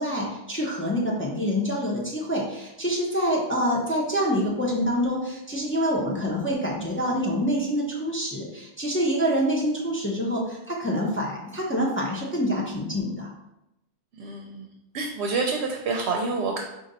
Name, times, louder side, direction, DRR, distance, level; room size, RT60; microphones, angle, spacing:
voice 1, 0.0-13.3, equal, 15° left, -3 dB, 0.6 m, -26 dB
voice 2, 14.2-14.7 14.9-16.6, right 4 dB, 80° right, 2 dB, 0.8 m, -28 dB
5.1 x 2.5 x 4.0 m, 0.89 s
omnidirectional pair, 1.1 m